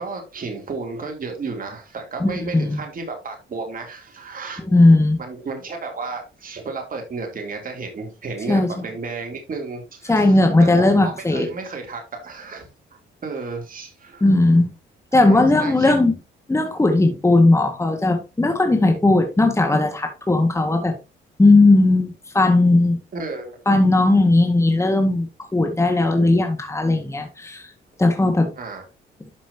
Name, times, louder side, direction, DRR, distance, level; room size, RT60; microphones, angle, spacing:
voice 1, 0.0-4.6 5.2-14.3 15.1-15.9 23.1-23.9 28.6-28.8, right 4 dB, 45° right, 3 dB, 3.2 m, -33 dB
voice 2, 2.2-2.8 4.6-5.2 8.5-8.7 10.1-11.5 14.2-14.7 15.1-16.1 16.5-20.9 21.4-23.0 23.7-27.7 28.0-28.5, left 2 dB, 15° left, 4 dB, 1.9 m, -17 dB
12.0 x 6.0 x 2.9 m, 0.28 s
cardioid pair, 90°, 20 cm